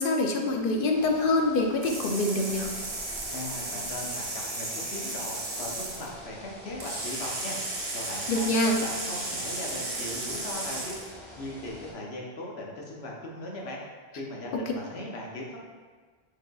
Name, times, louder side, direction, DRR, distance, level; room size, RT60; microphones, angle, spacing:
voice 1, 0.0-2.7 8.3-8.8, left 2 dB, 65° left, 2 dB, 0.7 m, -25 dB
sound 1, 0.9-11.9, left 1 dB, ahead, 1.1 m, -46 dB
sound 2, 1.8-6.1 6.8-11.1, right 2 dB, 70° right, 1.2 m, -34 dB
voice 2, 3.3-4.3 4.5-7.6 7.9-10.9 11.4-13.8 14.2-15.6, left 1 dB, 80° left, -2 dB, 1.1 m, -38 dB
4.7 x 4.7 x 2.3 m, 1.5 s
omnidirectional pair, 1.0 m